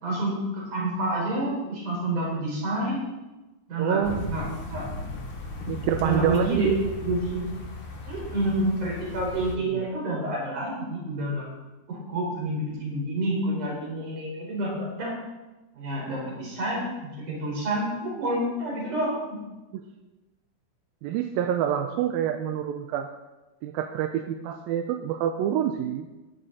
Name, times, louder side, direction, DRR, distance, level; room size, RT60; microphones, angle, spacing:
voice 1, 0.0-3.0 3.7-4.0 4.3-4.9 6.0-6.8 7.0-7.5 8.1-11.4 11.9-15.1 15.7-19.4, right 1 dB, 55° right, -4 dB, 6.2 m, -28 dB
voice 2, 3.8-4.3 5.7-6.7 9.7-9.8 19.7-19.9 21.0-23.1 23.6-26.1, right 10 dB, 80° right, 5 dB, 2.4 m, -27 dB
sound 1, 4.0-9.6, left 2 dB, 45° left, 2.0 m, -36 dB
13.5 x 11.0 x 4.2 m, 1.1 s
omnidirectional pair, 4.3 m